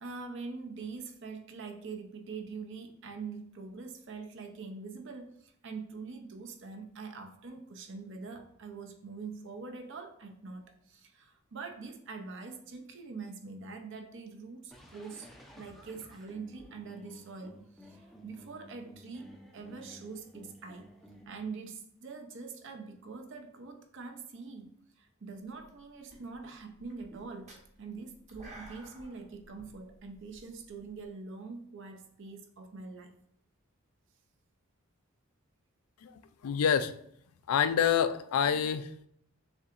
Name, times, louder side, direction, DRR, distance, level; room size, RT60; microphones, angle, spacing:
voice 1, 0.0-15.3 15.6-19.3 19.5-20.9 21.3-27.5 27.8-33.1, right 4 dB, 55° right, 5 dB, 0.6 m, -44 dB
sound 1, 14.7-21.2, equal, ahead, 0.4 m, -54 dB
sound 2, 25.5-25.8 26.1-31.1, right 1 dB, 35° right, 1.0 m, -53 dB
voice 2, 36.4-36.9 37.5-38.9, left 8 dB, 80° left, 12 dB, 0.4 m, -27 dB
6.7 x 2.8 x 2.5 m, 0.69 s
head